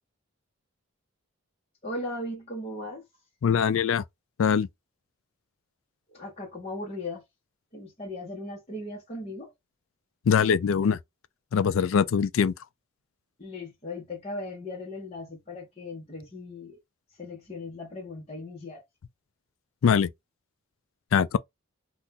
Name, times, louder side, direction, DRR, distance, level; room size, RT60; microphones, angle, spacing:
voice 1, 1.8-3.0 6.1-7.2 7.7-9.5 13.4-16.8 17.2-18.8, left 2 dB, 30° left, 1.0 m, -37 dB
voice 2, 3.4-4.0 4.4-4.7 10.3-11.0 11.5-12.5 19.8-20.1 21.1-21.4, left 7 dB, 70° left, 0.3 m, -22 dB
2.8 x 2.5 x 3.6 m
head